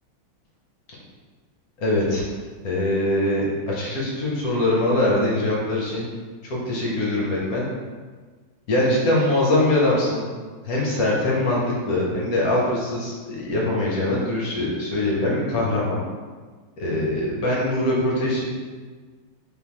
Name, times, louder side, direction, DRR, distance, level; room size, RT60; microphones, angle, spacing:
voice 1, 1.8-2.2 2.6-6.0 6.4-7.7 8.7-10.3 10.6-16.0 16.8-18.5, left 1 dB, 60° left, -4 dB, 1.0 m, -22 dB
3.8 x 3.6 x 3.0 m, 1.5 s
omnidirectional pair, 2.3 m